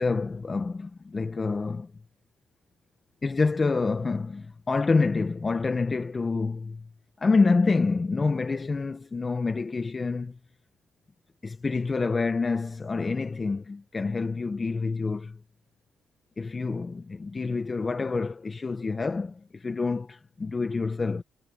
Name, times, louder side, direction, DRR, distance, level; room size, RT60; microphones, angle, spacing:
voice 1, 0.0-1.9 3.2-6.9 7.2-10.4 11.4-15.4 16.4-21.2, left 4 dB, 30° left, 1.0 m, -27 dB
cardioid pair, 90°, 0 cm